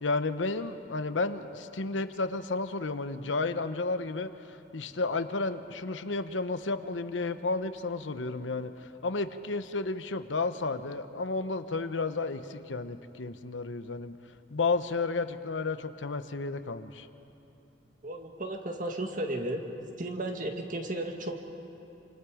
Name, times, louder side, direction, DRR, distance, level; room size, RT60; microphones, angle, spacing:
voice 1, 0.0-14.2 14.5-17.1, left 3 dB, 85° left, 10 dB, 0.9 m, -32 dB
voice 2, 18.0-19.6 20.0-21.4, right 1 dB, 45° right, 3 dB, 1.9 m, -34 dB
28.0 x 26.0 x 5.0 m, 2.9 s
head